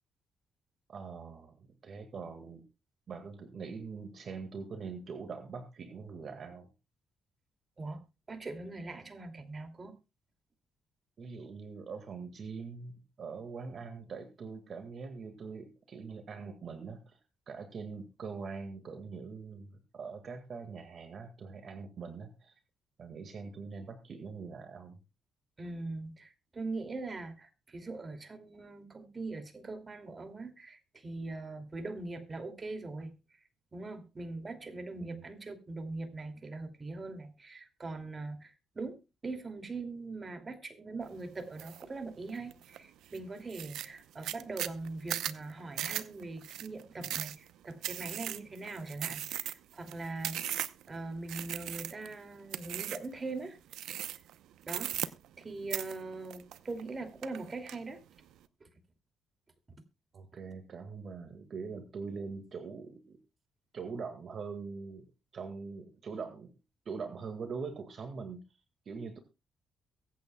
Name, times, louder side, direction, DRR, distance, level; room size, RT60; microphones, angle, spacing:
voice 1, 0.9-2.6 3.1-6.7 11.2-17.2 17.5-22.6 23.0-25.0 35.0-35.2 60.1-63.2 63.7-65.1 65.3-66.5 66.9-68.4 68.9-69.2, right 5 dB, 50° right, 7 dB, 1.8 m, -43 dB
voice 2, 8.3-10.0 25.6-33.1 33.7-50.4 50.9-53.6 54.7-55.0 55.4-58.0 58.6-58.7, right 3 dB, 30° right, 6 dB, 2.5 m, -41 dB
sound 1, 41.6-41.8 42.3-42.8 43.1-43.2 43.5-50.9 51.3-52.1 52.5-53.1 53.7-54.3 54.6-55.4 55.7-56.9 57.2-57.8, right 12 dB, 85° right, 0.7 m, -37 dB
22.5 x 8.6 x 2.3 m, 0.28 s
cardioid pair, 90°, 0 cm